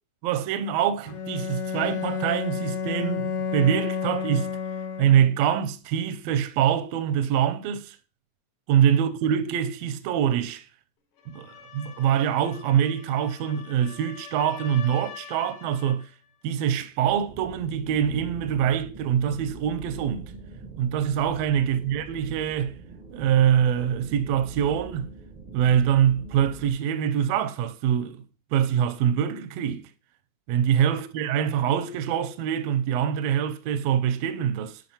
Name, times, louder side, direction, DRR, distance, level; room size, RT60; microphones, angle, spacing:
voice 1, 0.2-4.5 5.0-8.0 8.7-10.6 11.3-16.1 16.4-20.3 20.8-22.8 23.1-25.1 25.5-28.2 28.5-29.9 30.5-34.8, right 9 dB, 80° right, 1.6 m, -24 dB
Bowed string instrument, 1.1-5.5, left 6 dB, 75° left, 2.1 m, -30 dB
sound 1, 11.2-16.1, left 8 dB, 60° left, 1.7 m, -45 dB
sound 2, 17.1-26.7, right 4 dB, 60° right, 0.4 m, -43 dB
9.1 x 5.5 x 2.9 m
omnidirectional pair, 3.5 m